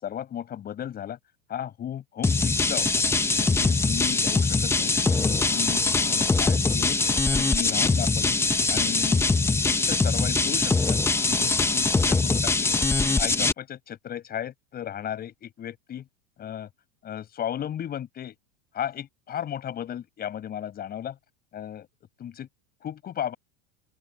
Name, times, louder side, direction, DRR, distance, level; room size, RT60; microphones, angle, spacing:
voice 1, 0.0-1.2 1.5-3.0 3.4-7.0 7.3-8.3 8.7-9.2 9.6-11.0 11.3-12.7 13.2-16.1 16.4-16.7 17.0-18.4 18.7-21.2 21.5-21.9 22.2-22.5 22.8-23.3, left 10 dB, 30° left, 7.5 m, -35 dB
sound 1, 2.2-13.5, left 3 dB, 10° left, 1.3 m, -23 dB
open air
supercardioid pair, 135°, 32 cm